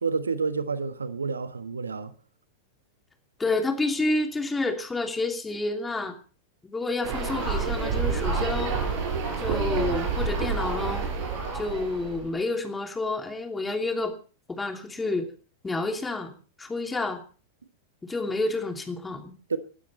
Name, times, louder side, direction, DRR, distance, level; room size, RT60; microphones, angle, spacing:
voice 1, 0.0-2.1 19.5-19.6, right 5 dB, 75° right, 1.1 m, -29 dB
voice 2, 3.4-6.2 6.6-8.7 9.4-11.1 11.5-14.1 14.5-15.3 15.6-16.3 16.6-17.2 18.0-19.3, left 2 dB, 10° left, 2.8 m, -29 dB
sound 1, 7.0-12.3, right 5 dB, 50° right, 6.2 m, -28 dB
20.5 x 12.0 x 4.3 m
figure-of-eight pair, 95°, 0 cm